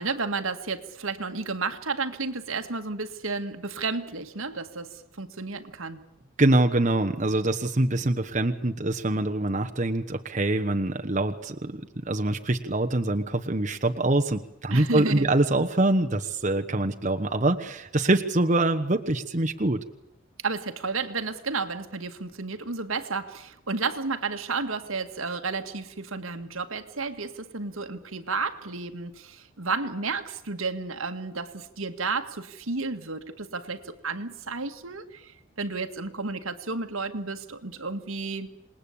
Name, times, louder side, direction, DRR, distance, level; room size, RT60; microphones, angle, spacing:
voice 1, 0.0-6.0 14.7-15.3 20.4-38.5, right 4 dB, 80° right, 8 dB, 1.9 m, -32 dB
voice 2, 6.4-19.8, right 2 dB, 35° right, 5 dB, 1.1 m, -24 dB
27.5 x 20.5 x 8.6 m, 0.80 s
head